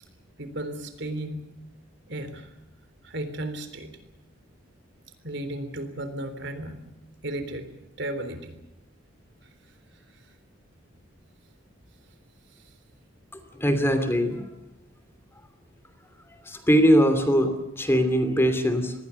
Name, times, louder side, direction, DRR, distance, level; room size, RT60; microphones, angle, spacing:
voice 1, 0.4-1.5 2.1-2.5 3.0-3.9 5.2-6.9 7.2-7.7 8.0-8.5, right 1 dB, 60° right, 10 dB, 3.6 m, -34 dB
voice 2, 13.3-14.4 16.4-18.9, equal, 10° left, 8 dB, 2.8 m, -21 dB
26.5 x 20.5 x 7.0 m, 0.93 s
head